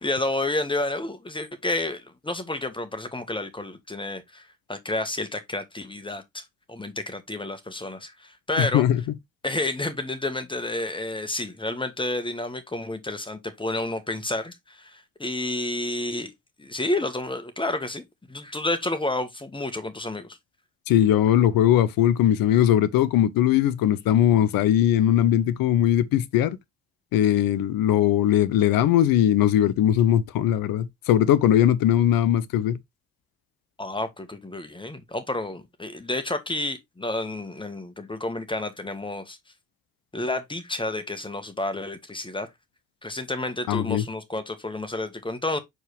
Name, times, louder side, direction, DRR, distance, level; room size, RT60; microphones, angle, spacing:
voice 1, 0.0-6.4 6.7-8.8 9.4-16.3 16.6-20.4 33.8-39.4 40.1-42.5 43.0-45.6, left 2 dB, 10° left, 1.5 m, -30 dB
voice 2, 8.6-9.0 20.9-26.6 27.1-32.8 43.7-44.0, left 11 dB, 60° left, 0.8 m, -20 dB
6.5 x 4.6 x 3.3 m
figure-of-eight pair, 40°, 39 cm